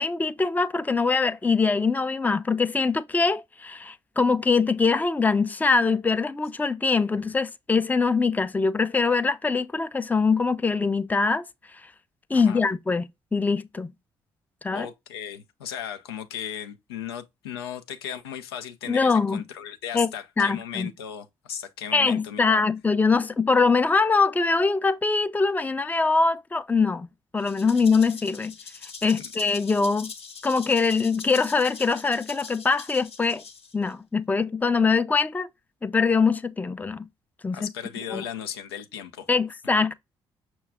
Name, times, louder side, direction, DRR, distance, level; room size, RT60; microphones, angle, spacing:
voice 1, 0.0-11.4 12.3-13.9 14.6-14.9 18.9-19.4 19.9-20.1 20.4-20.9 21.9-27.1 27.3-28.5 29.0-30.1 30.4-33.4 33.7-35.5 35.8-37.1 37.4-37.7 38.1-38.2 39.3-39.9, left 4 dB, 15° left, 0.4 m, -23 dB
voice 2, 12.3-12.6 14.7-22.6 29.1-29.3 37.5-39.3, left 9 dB, 90° left, 0.5 m, -36 dB
Rattle (instrument), 27.4-33.9, left 5 dB, 50° left, 0.8 m, -42 dB
5.9 x 2.2 x 3.4 m
hypercardioid pair, 45°, 13 cm